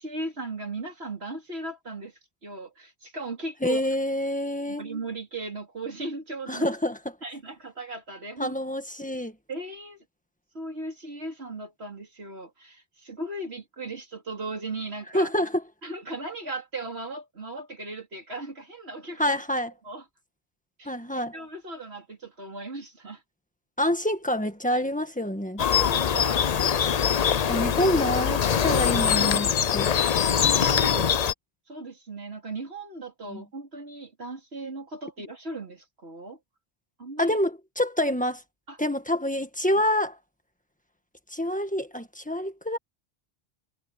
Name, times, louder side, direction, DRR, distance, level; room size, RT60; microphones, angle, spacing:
voice 1, 0.0-3.8 4.7-6.7 7.2-8.5 9.5-10.0 10.5-15.3 15.8-19.4 19.8-20.0 20.8-23.2 24.7-24.8 25.6-26.5 30.4-31.0 31.7-36.4 37.0-37.4 38.7-38.8, right 2 dB, 90° right, 4.0 m, -37 dB
voice 2, 3.6-4.8 6.5-7.0 8.4-9.3 15.1-15.6 19.2-19.7 20.8-21.3 23.8-25.6 27.4-29.9 30.9-31.1 33.3-33.4 37.2-38.4 38.8-40.2 41.3-42.8, left 1 dB, 10° left, 1.6 m, -27 dB
sound 1, 25.6-31.3, left 8 dB, 45° left, 0.6 m, -23 dB
omnidirectional pair, 1.0 m